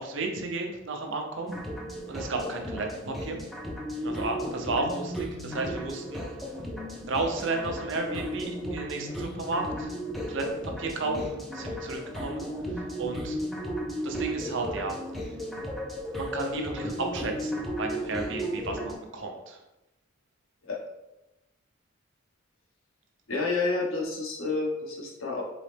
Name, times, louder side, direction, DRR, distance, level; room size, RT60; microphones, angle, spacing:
voice 1, 0.0-1.5 2.1-3.4 4.0-6.2 7.1-9.9 10.3-13.4 14.0-14.9 16.1-19.6, right 3 dB, 60° right, 2 dB, 0.7 m, -33 dB
sound 1, 1.5-18.9, equal, ahead, 0.5 m, -35 dB
voice 2, 23.3-25.4, left 3 dB, 75° left, -3 dB, 1.2 m, -29 dB
3.9 x 3.9 x 3.4 m, 0.96 s
head